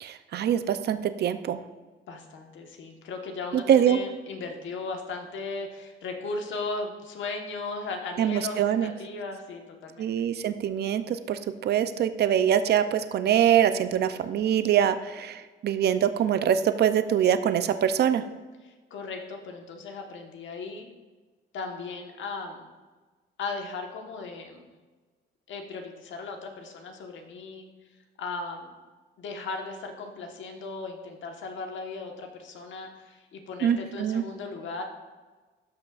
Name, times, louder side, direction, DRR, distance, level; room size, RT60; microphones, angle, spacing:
voice 1, 0.0-1.6 3.5-4.0 8.2-8.9 10.0-18.2 33.6-34.2, right 9 dB, 55° right, 11 dB, 0.5 m, -24 dB
voice 2, 2.1-10.1 18.6-20.9 21.5-22.6 23.4-24.6 25.5-27.7 28.2-28.7 29.2-34.8, left 3 dB, 75° left, 3 dB, 1.2 m, -37 dB
13.0 x 5.9 x 2.4 m, 1.3 s
cardioid pair, 90°, 20 cm